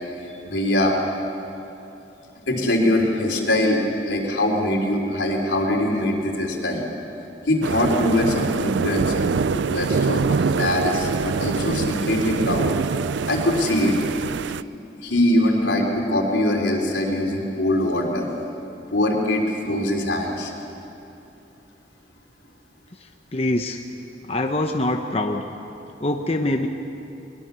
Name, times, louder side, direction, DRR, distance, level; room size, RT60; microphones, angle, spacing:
voice 1, 0.4-1.0 2.5-6.8 7.5-12.7 13.3-13.9 15.0-18.3 18.9-20.5, left 1 dB, 85° left, 0 dB, 3.6 m, -22 dB
sound 1, 7.6-14.6, right 5 dB, 85° right, 0.4 m, -24 dB
voice 2, 23.3-23.8 24.3-25.4 26.0-26.7, left 1 dB, 35° left, 4 dB, 0.8 m, -24 dB
21.5 x 21.5 x 6.9 m, 2.9 s
head